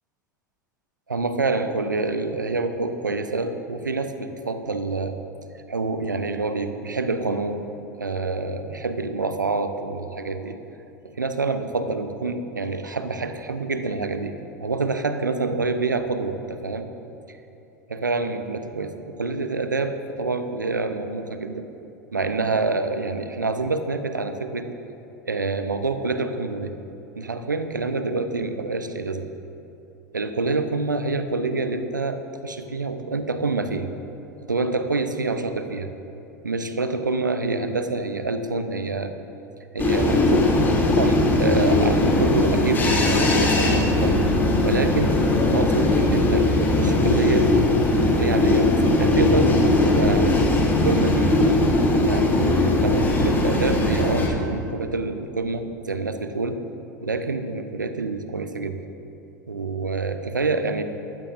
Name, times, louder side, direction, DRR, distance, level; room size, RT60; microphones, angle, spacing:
voice 1, 1.1-5.2 5.5-7.6 8.0-10.6 11.0-16.9 17.3-17.4 17.9-21.7 22.1-24.7 25.2-26.8 27.2-29.3 30.1-33.9 34.5-35.9 36.4-39.1 39.7-40.6 40.9-44.2 44.6-45.2 45.5-47.6 48.1-50.3 50.8-51.4 51.9-52.4 52.8-56.6 57.0-58.8 59.5-60.8, right 3 dB, 85° right, 9 dB, 0.8 m, -27 dB
sound 1, 39.8-54.3, left 2 dB, 20° left, 2.9 m, -19 dB
21.0 x 15.0 x 2.6 m, 2.8 s
figure-of-eight pair, 80°, 10 cm